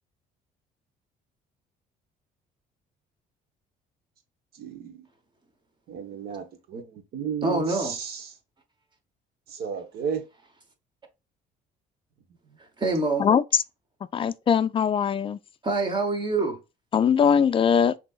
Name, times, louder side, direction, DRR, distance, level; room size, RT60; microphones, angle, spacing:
voice 1, 4.5-5.1 5.9-8.3 9.5-10.3, right 7 dB, 70° right, 1.0 m, -34 dB
voice 2, 7.4-8.0 12.6-13.3 15.6-16.6, right 3 dB, 25° right, 1.0 m, -26 dB
voice 3, 14.1-15.4 16.9-17.9, left 7 dB, 30° left, 0.3 m, -21 dB
6.0 x 2.8 x 2.4 m
cardioid pair, 110°, 17 cm